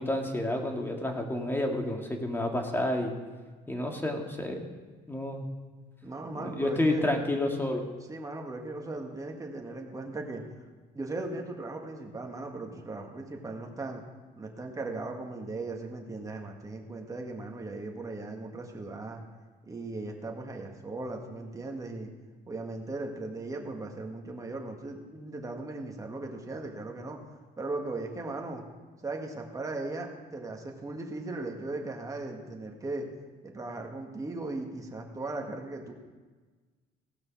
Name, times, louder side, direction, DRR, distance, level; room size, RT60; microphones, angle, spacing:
voice 1, 0.0-3.1 3.7-4.7 5.1-5.5 6.3-7.9, left 1 dB, 10° left, 2 dB, 1.8 m, -30 dB
voice 2, 6.0-7.0 8.1-10.4 10.9-14.0 14.4-19.2 19.6-22.1 22.5-27.2 27.6-28.6 29.0-33.1 33.4-35.9, right 2 dB, 20° right, 1 dB, 1.8 m, -38 dB
17.0 x 6.2 x 6.2 m, 1.3 s
cardioid pair, 110°, 17 cm